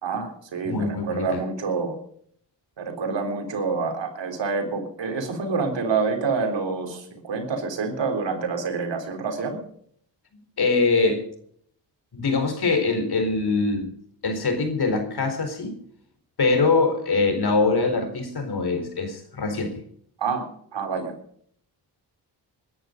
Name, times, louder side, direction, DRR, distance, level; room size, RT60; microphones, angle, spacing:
voice 1, 0.0-2.0 2.8-9.6 20.2-20.5 20.7-21.1, right 4 dB, 75° right, 4 dB, 3.9 m, -27 dB
voice 2, 0.6-1.4 10.6-11.2 12.1-13.9 14.2-15.8 16.4-19.8, left 3 dB, 60° left, 8 dB, 4.4 m, -23 dB
20.5 x 11.0 x 5.3 m, 0.64 s
cardioid pair, 65°, 44 cm